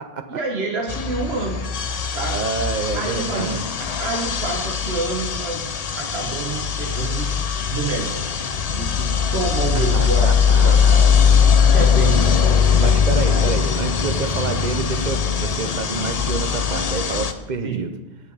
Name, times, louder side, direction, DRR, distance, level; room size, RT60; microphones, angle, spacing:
voice 1, 0.3-1.7 2.1-2.4 2.9-5.7 6.0-7.3 7.7-8.3 8.7-11.2 11.7-12.7 13.3-13.5 17.6-17.9, right 3 dB, 85° right, 2 dB, 1.5 m, -28 dB
sound 1, 0.9-17.3, left 6 dB, 45° left, 0.6 m, -20 dB
voice 2, 2.3-3.6 9.9-11.6 12.7-17.9, right 5 dB, 50° right, 8 dB, 0.9 m, -28 dB
16.0 x 5.7 x 4.0 m, 1.1 s
omnidirectional pair, 1.0 m